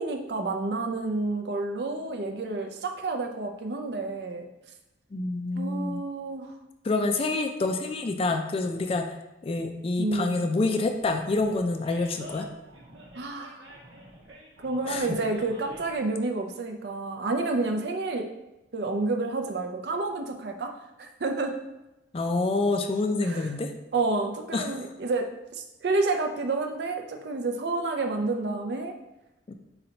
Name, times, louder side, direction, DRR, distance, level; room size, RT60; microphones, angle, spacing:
voice 1, 0.0-4.5 5.5-6.5 10.0-10.5 13.2-13.6 14.6-18.3 18.7-21.6 23.2-23.5 23.9-28.9, right 3 dB, 60° right, 4 dB, 0.5 m, -29 dB
voice 2, 5.1-6.0 6.8-9.1 9.4-12.5 14.9-15.1 22.1-23.7 24.5-24.7 29.5-29.6, left 3 dB, 30° left, 5 dB, 0.3 m, -27 dB
Animal, 11.0-16.0, right 1 dB, 80° right, 0.9 m, -48 dB
4.2 x 4.0 x 2.8 m, 0.96 s
head